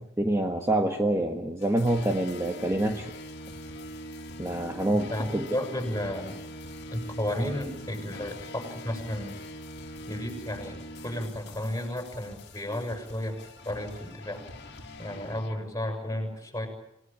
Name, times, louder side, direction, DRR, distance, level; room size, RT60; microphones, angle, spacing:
voice 1, 0.0-3.1 4.4-5.4, right 1 dB, 15° right, 3 dB, 1.5 m, -26 dB
sound 1, 1.6-15.9, left 1 dB, 60° left, 2.5 m, -43 dB
voice 2, 4.9-6.4 6.9-9.4 10.1-13.4 13.6-14.4 15.0-16.7, left 1 dB, 15° left, 5 dB, 6.8 m, -33 dB
27.0 x 18.5 x 8.8 m, 0.84 s
head